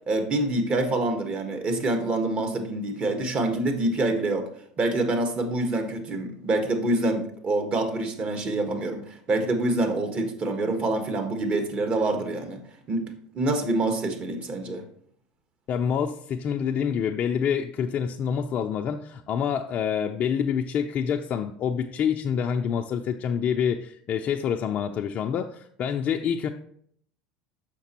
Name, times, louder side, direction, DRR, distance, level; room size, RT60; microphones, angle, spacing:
voice 1, 0.1-4.5 4.8-12.6 12.9-14.8, right 2 dB, 35° right, 5 dB, 1.4 m, -26 dB
voice 2, 15.7-26.5, left 7 dB, 45° left, 3 dB, 0.4 m, -27 dB
6.8 x 5.8 x 2.9 m, 0.64 s
hypercardioid pair, 90°, 4 cm